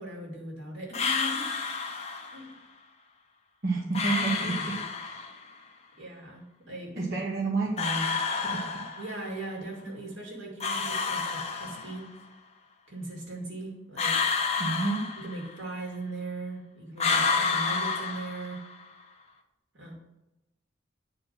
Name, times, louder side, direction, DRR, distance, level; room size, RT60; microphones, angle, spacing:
voice 1, 0.0-1.5 2.3-2.5 6.0-7.0 9.0-12.1 12.9-14.3 15.2-18.6 19.7-20.0, right 2 dB, 75° right, -2 dB, 2.4 m, -39 dB
sound 1, 0.9-2.4 3.9-5.4 7.8-9.3 10.6-12.2 14.0-15.7 17.0-18.8, left 5 dB, 35° left, 0.8 m, -30 dB
voice 2, 3.6-5.2 6.9-8.6 14.6-15.1, right 3 dB, 55° right, -4 dB, 1.3 m, -30 dB
9.5 x 4.6 x 4.0 m, 0.94 s
head